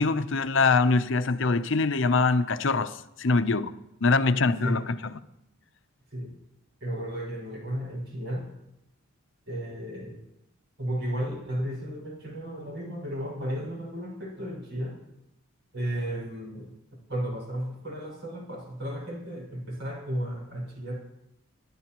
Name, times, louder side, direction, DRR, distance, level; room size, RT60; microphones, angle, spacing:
voice 1, 0.0-3.7 4.0-5.0, left 3 dB, 65° left, 0.7 m, -23 dB
voice 2, 4.3-4.8 6.1-6.3 6.8-8.5 9.5-10.3 10.8-15.0 15.7-16.8 17.1-21.0, right 1 dB, 60° right, 6.0 m, -34 dB
28.0 x 11.5 x 3.0 m
head